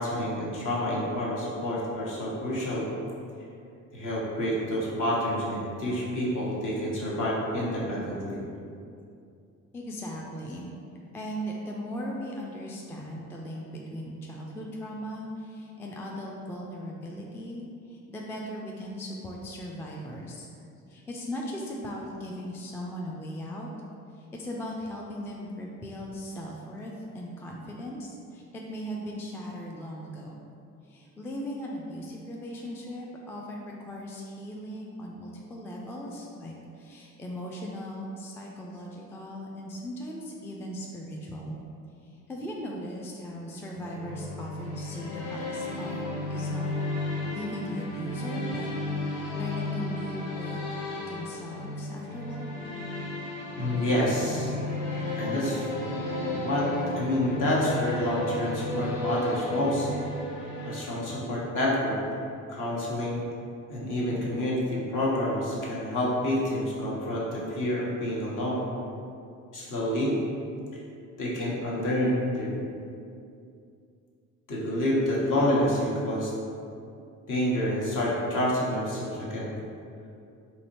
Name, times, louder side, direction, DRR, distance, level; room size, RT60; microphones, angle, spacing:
voice 1, 0.0-2.8 3.9-8.4 53.6-54.5 55.2-55.9 56.2-56.7 56.9-59.9 60.6-62.0 62.5-63.2 63.7-68.6 69.5-70.1 71.2-72.5 74.5-76.3 77.3-79.5, left 1 dB, 50° left, -5 dB, 1.2 m, -28 dB
voice 2, 9.7-10.7 11.1-20.5 20.9-23.7 24.1-30.4 30.8-41.6 42.0-46.0 46.3-46.8 47.3-50.7 51.1-52.6, equal, 5° left, -2 dB, 0.3 m, -38 dB
sound 1, 43.7-61.5, left 1 dB, 75° left, 0.7 m, -34 dB
4.0 x 2.9 x 2.9 m, 2.5 s
figure-of-eight pair, 50°, 40 cm